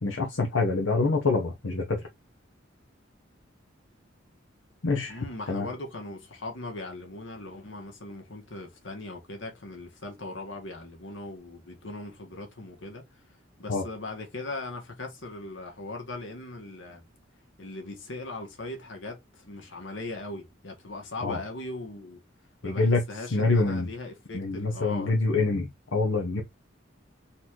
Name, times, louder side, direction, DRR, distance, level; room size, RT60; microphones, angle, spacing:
voice 1, 0.0-2.0 4.8-5.7 13.7-13.8 21.2-21.4 22.6-23.0 23.3-23.9 24.3-26.4, left 3 dB, 90° left, 0.9 m, -26 dB
voice 2, 5.1-13.0 13.6-17.0 17.6-22.2 22.6-25.2, left 2 dB, 75° left, 1.7 m, -39 dB
4.1 x 3.1 x 3.7 m
head